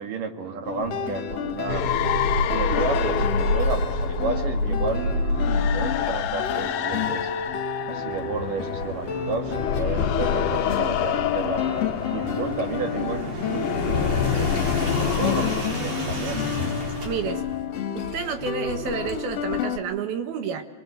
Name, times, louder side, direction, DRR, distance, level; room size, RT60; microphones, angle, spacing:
voice 1, 0.0-1.8 2.5-7.3 7.9-11.7 12.1-16.4, right 5 dB, 65° right, 5 dB, 3.5 m, -32 dB
sound 1, 0.7-19.8, left 7 dB, 50° left, 2.3 m, -31 dB
sound 2, 1.7-9.0 9.4-15.7, left 10 dB, 70° left, 2.0 m, -28 dB
sound 3, 1.7-6.3 7.7-17.6, left 1 dB, 45° right, 4.9 m, -29 dB
voice 2, 17.1-17.4 18.0-20.6, right 6 dB, 80° right, 7 dB, 3.5 m, -30 dB
24.0 x 22.0 x 8.1 m, 1.2 s
omnidirectional pair, 4.4 m